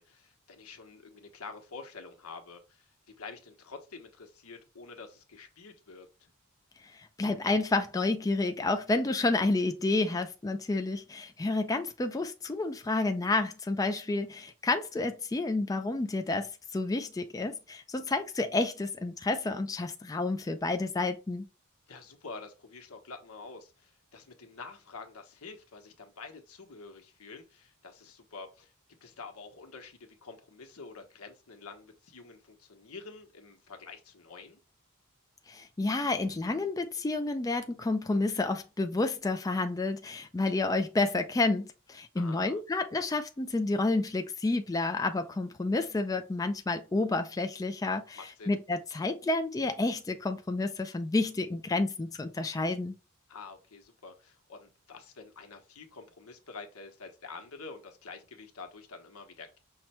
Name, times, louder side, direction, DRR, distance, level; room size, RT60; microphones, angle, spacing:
voice 1, 0.0-6.3 21.9-28.7 29.0-34.6 42.1-42.6 48.2-48.6 53.3-59.6, left 4 dB, 80° left, 1.1 m, -47 dB
voice 2, 6.9-21.5 35.5-52.9, left 2 dB, 15° left, 0.4 m, -30 dB
5.7 x 2.2 x 4.2 m
head